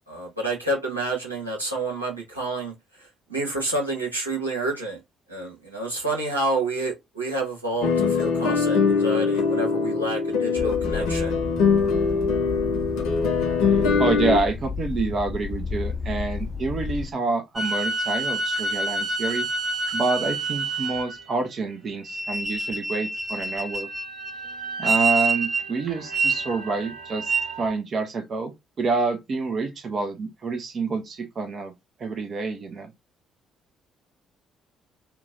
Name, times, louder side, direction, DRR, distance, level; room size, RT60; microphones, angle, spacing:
voice 1, 0.1-5.0 5.3-11.4, right 2 dB, 90° right, 1.3 m, -29 dB
sound 1, 7.8-14.4, left 5 dB, 65° left, 0.8 m, -22 dB
sound 2, 10.6-17.1, left 5 dB, 30° left, 0.5 m, -32 dB
voice 2, 13.7-19.5 19.9-23.9 24.8-27.3 27.6-28.5 28.8-31.7 32.0-32.9, right 3 dB, 40° right, 0.7 m, -27 dB
sound 3, 17.6-21.3 22.0-27.7, right 3 dB, 15° right, 1.4 m, -27 dB
3.0 x 2.3 x 3.8 m
figure-of-eight pair, 45°, 0 cm